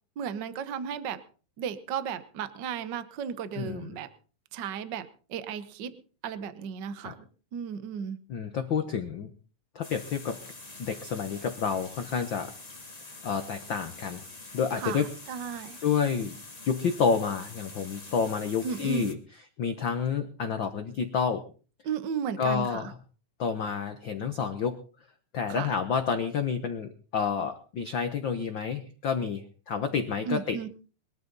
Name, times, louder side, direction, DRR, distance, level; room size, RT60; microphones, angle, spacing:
voice 1, 0.2-1.2 1.6-4.1 4.5-6.0 6.2-7.3 7.5-8.2 14.8-15.8 18.6-19.1 21.8-22.9 25.5-25.7 30.3-30.7, right 7 dB, 75° right, 12 dB, 1.0 m, -34 dB
voice 2, 3.6-3.9 7.0-7.1 8.3-9.3 9.7-10.4 10.8-12.5 13.2-14.2 14.5-15.0 15.8-16.4 16.6-19.2 19.6-21.4 22.4-22.9 23.4-24.8 25.3-30.6, left 6 dB, 80° left, 7 dB, 1.0 m, -29 dB
sound 1, 9.8-19.1, left 2 dB, 25° left, 0.9 m, -46 dB
22.0 x 13.0 x 4.0 m, 0.38 s
omnidirectional pair, 3.8 m